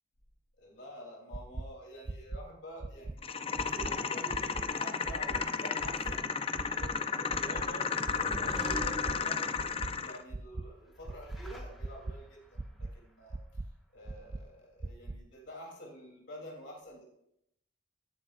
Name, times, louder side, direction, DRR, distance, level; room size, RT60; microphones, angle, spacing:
voice 1, 0.6-6.3 6.7-13.4 13.9-17.0, right 1 dB, 70° left, -2 dB, 3.2 m, -48 dB
sound 1, 1.3-1.6 2.1-2.4 2.8-3.1 3.6-3.9 4.3-4.6 5.1-5.4 5.8-6.1 6.6-6.9 7.3-7.6 8.0-8.4 8.8-9.1 9.6-9.9 10.3-10.6 11.1-11.4 11.8-12.1 12.6-12.9 13.3-13.7 14.1-14.4 14.8-15.2, right 2 dB, 25° right, 0.3 m, -39 dB
sound 2, 3.2-10.2, left 5 dB, 30° left, 0.5 m, -33 dB
sound 3, 7.8-9.8 10.8-12.4, equal, ahead, 1.5 m, -43 dB
17.0 x 10.0 x 2.5 m, 0.77 s
head